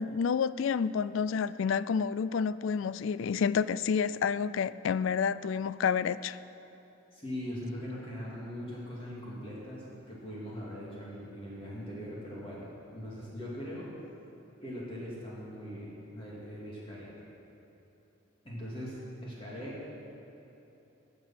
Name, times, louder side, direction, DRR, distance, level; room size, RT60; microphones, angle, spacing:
voice 1, 0.0-6.4, left 6 dB, 65° left, 16 dB, 0.3 m, -29 dB
voice 2, 7.1-13.9 14.6-17.1 18.4-19.8, equal, 25° left, -6 dB, 2.4 m, -41 dB
19.5 x 6.8 x 5.8 m, 3.0 s
head